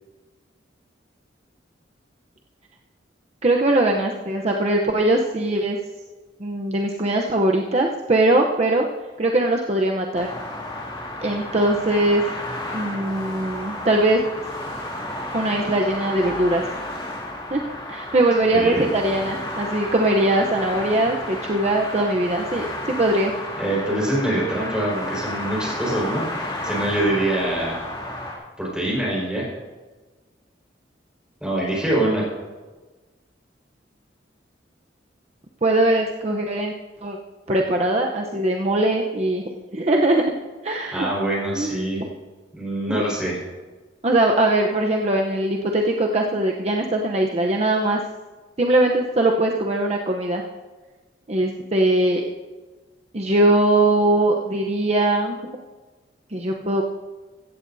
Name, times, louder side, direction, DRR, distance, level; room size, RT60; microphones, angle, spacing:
voice 1, 3.4-5.8 6.4-8.8 9.2-10.3 11.2-12.2 12.7-14.2 15.3-16.6 17.5-23.3 35.6-36.8 37.0-37.2 37.5-39.4 39.7-40.2 40.6-41.1 41.5-42.1 42.9-43.0 44.0-48.0 48.6-50.4 51.3-52.2 53.1-55.4 56.3-56.8, right 1 dB, 35° right, 1 dB, 0.8 m, -21 dB
sound 1, 10.1-28.4, left 1 dB, 25° left, 2.5 m, -32 dB
voice 2, 18.5-18.9 23.6-26.3 26.6-27.8 28.6-29.5 31.4-32.2 40.9-42.0 42.5-43.4, right 1 dB, 5° right, -5 dB, 4.7 m, -24 dB
16.5 x 14.0 x 2.7 m, 1.3 s
head